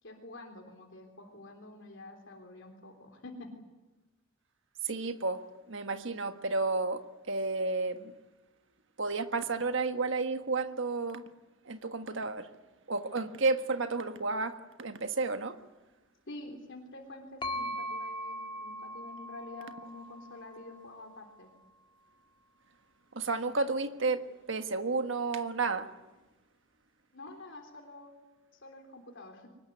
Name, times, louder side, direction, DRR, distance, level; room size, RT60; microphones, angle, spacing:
voice 1, 0.0-3.5 16.3-21.5 27.1-28.1 28.5-29.5, left 2 dB, 65° left, 3.6 m, -48 dB
voice 2, 4.8-8.1 9.0-11.3 11.6-12.5 12.9-15.6 23.1-25.9, right 3 dB, 65° right, 1.5 m, -32 dB
sound 1, 17.4-21.2, equal, 25° left, 1.9 m, -40 dB
23.5 x 20.5 x 9.6 m
head